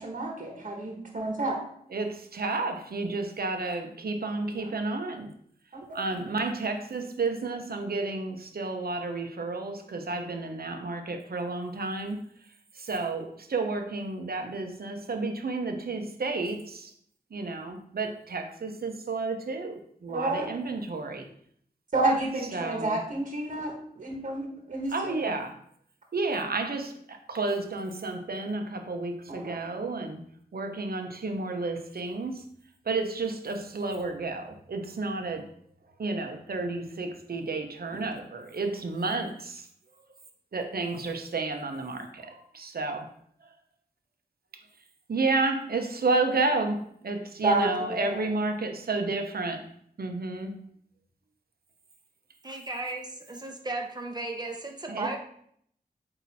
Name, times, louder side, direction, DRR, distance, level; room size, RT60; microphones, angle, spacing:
voice 1, 0.0-1.6 4.5-4.8 5.7-5.9 20.1-20.5 21.9-25.3 29.3-29.6 47.4-48.2, right 2 dB, 50° right, 0 dB, 1.4 m, -30 dB
voice 2, 1.9-5.3 5.9-12.3 12.7-16.9 17.3-21.3 22.5-23.0 24.9-25.5 26.1-30.2 30.5-32.4 32.8-35.5 36.0-39.7 40.5-43.1 43.4-43.5 45.1-49.6 50.0-50.6 54.9-55.1, right 3 dB, 70° right, 5 dB, 0.9 m, -31 dB
voice 3, 52.4-55.2, right 2 dB, 25° right, 2 dB, 1.1 m, -35 dB
8.4 x 2.9 x 4.2 m, 0.66 s
wide cardioid pair, 75°, 16 cm